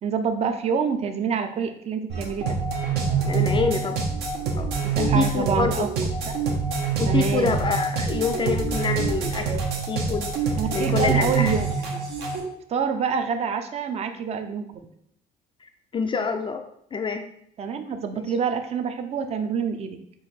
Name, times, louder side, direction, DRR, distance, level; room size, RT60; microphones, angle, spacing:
voice 1, 0.0-2.6 4.8-5.9 6.3-6.4 7.1-7.6 10.6-12.0 12.7-14.9 17.6-20.0, right 6 dB, 40° right, 8 dB, 0.5 m, -27 dB
sound 1, 2.1-12.4, right 5 dB, 75° right, 0.9 m, -25 dB
voice 2, 3.2-4.0 4.6-4.7 5.0-5.9 7.0-10.3 10.7-11.5 15.6-16.6 16.9-17.2 18.1-18.2, left 5 dB, 30° left, 6 dB, 0.3 m, -26 dB
4.7 x 2.6 x 4.3 m, 0.72 s
cardioid pair, 110°, 17 cm